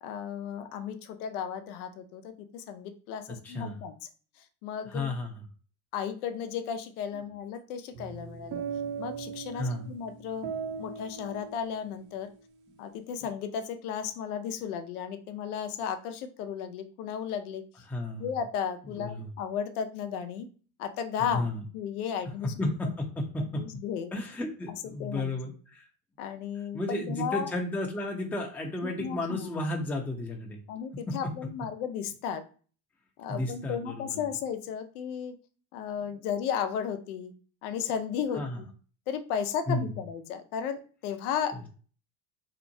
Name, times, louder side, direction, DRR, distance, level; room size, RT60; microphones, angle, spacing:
voice 1, 0.0-3.9 4.6-5.1 5.9-8.6 9.0-10.5 10.8-12.3 12.8-17.6 18.1-20.5 20.8-21.5 21.7-22.7 23.5-24.1 25.0-25.3 26.2-27.5 29.0-29.7 30.7-32.4 33.2-35.3 35.7-37.3 37.6-38.7 39.1-41.7, left 7 dB, 85° left, 8 dB, 0.6 m, -34 dB
voice 2, 3.4-3.8 4.9-5.4 9.5-9.9 17.9-18.3 18.9-19.3 21.3-21.6 22.6-23.6 24.1-25.9 26.7-30.6 31.1-31.2 33.3-34.2 38.3-38.6 39.7-40.0 41.5-41.6, left 2 dB, 5° left, 1 dB, 0.5 m, -33 dB
sound 1, 7.9-12.3, right 6 dB, 45° right, 0.4 m, -39 dB
2.8 x 2.1 x 2.6 m, 0.40 s
hypercardioid pair, 80°, 44 cm